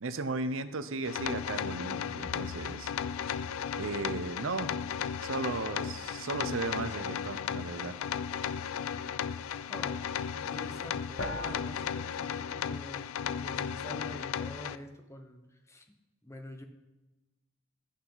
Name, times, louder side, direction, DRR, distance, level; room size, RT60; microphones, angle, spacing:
voice 1, 0.0-2.9 3.8-4.7 5.2-7.9, right 3 dB, 65° right, 11 dB, 0.6 m, -35 dB
sound 1, 1.0-14.8, left 8 dB, 80° left, 0.4 m, -35 dB
sound 2, 2.2-6.4 11.2-11.5, left 2 dB, 60° left, 1.0 m, -44 dB
voice 2, 9.7-10.1 10.3-15.9 16.2-16.6, equal, 15° left, 5 dB, 0.9 m, -46 dB
12.5 x 8.6 x 3.9 m, 1.1 s
head